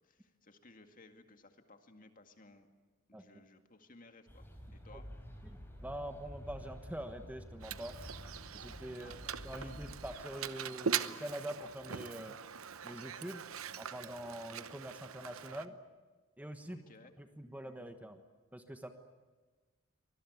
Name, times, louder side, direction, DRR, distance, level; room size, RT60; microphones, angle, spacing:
voice 1, 0.0-2.7 3.1-4.5 4.7-5.1 8.9-9.7 16.6-17.1, left 3 dB, 40° left, 6 dB, 2.1 m, -59 dB
sound 1, 4.3-10.1, equal, 10° left, 4.7 m, -50 dB
voice 2, 5.4-8.0 8.5-12.4 12.8-13.4 13.8-15.8 16.4-16.8 17.2-18.2 18.5-18.9, right 1 dB, 5° right, 7 dB, 1.2 m, -44 dB
Mechanisms, 7.6-15.7, right 7 dB, 90° right, 0.9 m, -42 dB
24.5 x 20.5 x 9.4 m, 1.3 s
head